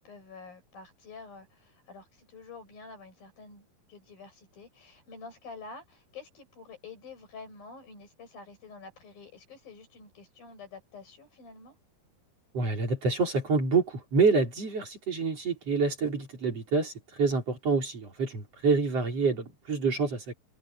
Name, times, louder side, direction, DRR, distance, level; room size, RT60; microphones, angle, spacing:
voice 1, 0.0-11.8, left 4 dB, 70° left, 9.6 m, -48 dB
voice 2, 12.5-16.9 17.2-20.3, right 4 dB, 40° right, 5.0 m, -27 dB
omnidirectional pair, 4.3 m